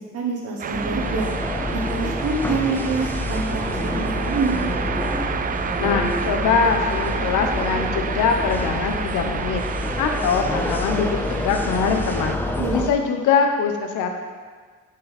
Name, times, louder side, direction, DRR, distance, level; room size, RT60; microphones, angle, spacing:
voice 1, 0.0-1.3 1.7-4.6 12.6-12.9, right 4 dB, 55° right, -1 dB, 1.1 m, -26 dB
sound 1, 0.6-12.4, right 6 dB, 30° right, 0.4 m, -30 dB
sound 2, 0.7-12.9, left 2 dB, 5° left, 0.7 m, -27 dB
voice 2, 5.8-12.4 12.7-14.1, left 5 dB, 90° left, 4 dB, 0.9 m, -23 dB
9.0 x 5.5 x 4.1 m, 1.5 s
cardioid pair, 90°, 30 cm